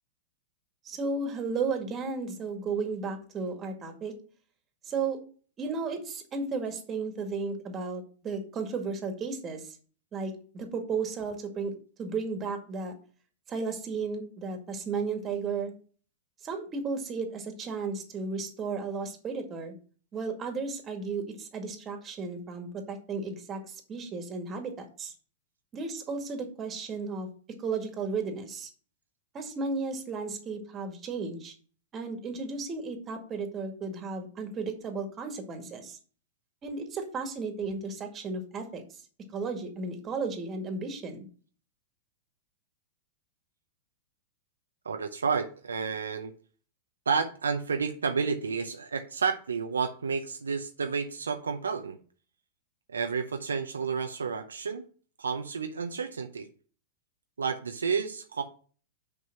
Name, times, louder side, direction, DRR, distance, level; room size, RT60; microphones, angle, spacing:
voice 1, 0.8-4.1 4.8-5.2 5.6-9.8 10.1-12.9 13.5-15.7 16.4-19.7 20.1-25.1 25.7-27.3 27.6-28.7 29.3-31.5 31.9-36.0 36.6-38.8 39.3-41.2, right 4 dB, 30° right, 5 dB, 2.0 m, -34 dB
voice 2, 44.8-46.3 47.1-52.0 52.9-54.8 55.2-56.5 57.4-58.4, right 5 dB, 85° right, 7 dB, 0.7 m, -30 dB
6.5 x 5.2 x 5.9 m, 0.41 s
hypercardioid pair, 105°, 0 cm